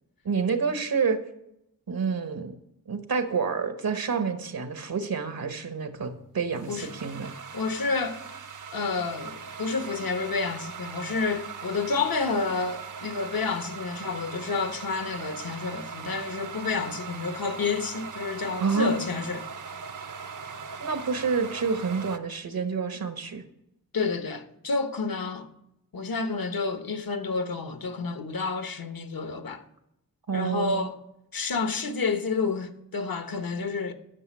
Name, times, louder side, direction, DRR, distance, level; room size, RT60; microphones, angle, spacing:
voice 1, 0.2-1.2 1.9-2.6 2.9-7.3 18.6-19.0 20.8-23.4 30.3-30.9, right 5 dB, 80° right, 1.2 m, -28 dB
sound 1, 6.0-22.2, right 6 dB, 60° right, 0.7 m, -40 dB
voice 2, 7.5-8.2 8.7-19.5 23.9-25.5 25.9-29.6 30.3-31.0 31.3-33.9, left 4 dB, 75° left, 1.1 m, -29 dB
11.0 x 6.0 x 6.2 m
wide cardioid pair, 60°, 35 cm